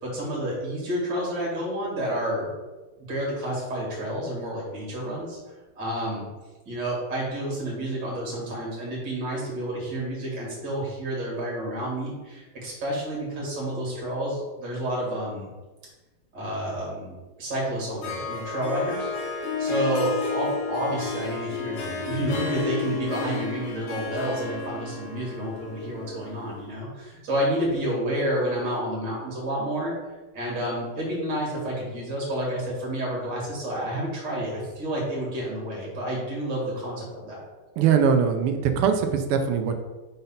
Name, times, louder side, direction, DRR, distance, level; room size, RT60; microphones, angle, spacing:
voice 1, 0.0-2.5 3.0-5.4 5.8-6.2 6.7-15.5 16.3-19.1 19.6-29.9 30.3-37.4, right 1 dB, 55° right, -4 dB, 2.8 m, -30 dB
Harp, 17.8-26.7, left 4 dB, 85° left, 2.1 m, -32 dB
voice 2, 37.8-39.8, right 7 dB, 85° right, 6 dB, 1.6 m, -21 dB
5.4 x 4.0 x 5.6 m, 1.2 s
omnidirectional pair, 2.4 m